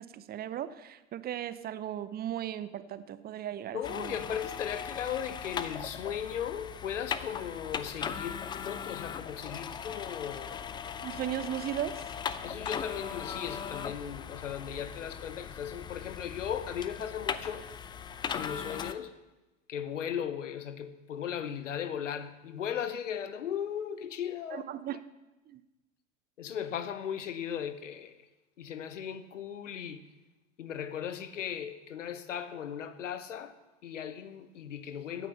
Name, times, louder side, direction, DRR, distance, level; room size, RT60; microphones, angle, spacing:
voice 1, 0.0-4.2 11.0-12.0 24.5-25.0 25.5-25.6, right 11 dB, 25° right, 0.8 m, -37 dB
voice 2, 3.7-10.6 12.4-17.6 18.3-19.1 19.7-24.7 26.4-28.2 28.6-30.0 30.6-33.5 33.8-35.3, left 8 dB, 70° left, 1.2 m, -37 dB
sound 1, 3.8-18.9, left 7 dB, 10° left, 0.4 m, -39 dB
16.5 x 9.3 x 5.6 m
figure-of-eight pair, 85°, 38 cm